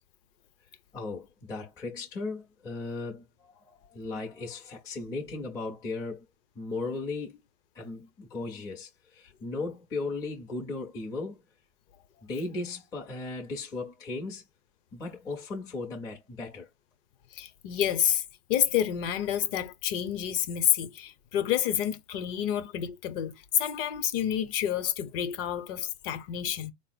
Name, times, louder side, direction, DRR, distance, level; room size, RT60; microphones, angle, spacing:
voice 1, 0.9-6.2 6.6-7.4 7.7-11.4 12.2-14.4 14.9-16.7, left 3 dB, 10° left, 0.5 m, -36 dB
voice 2, 17.4-18.2 18.5-26.7, left 10 dB, 40° left, 0.8 m, -29 dB
4.2 x 2.0 x 4.0 m
hypercardioid pair, 140°, 44 cm